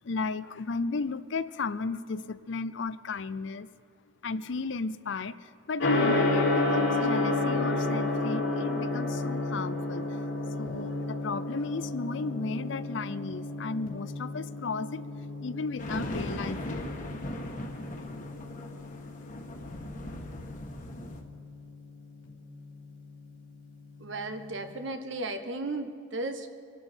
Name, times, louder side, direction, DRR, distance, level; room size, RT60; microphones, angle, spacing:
voice 1, 0.0-3.7 4.2-10.1 10.6-15.0 15.4-16.8, left 4 dB, 65° left, 15 dB, 0.5 m, -34 dB
Gong, 5.8-24.8, left 2 dB, 85° left, 3.3 m, -32 dB
sound 1, 15.8-21.2, left 1 dB, 40° left, 1.5 m, -38 dB
voice 2, 24.0-26.5, right 2 dB, 65° right, 7 dB, 1.3 m, -35 dB
25.0 x 12.0 x 4.5 m, 2.6 s
head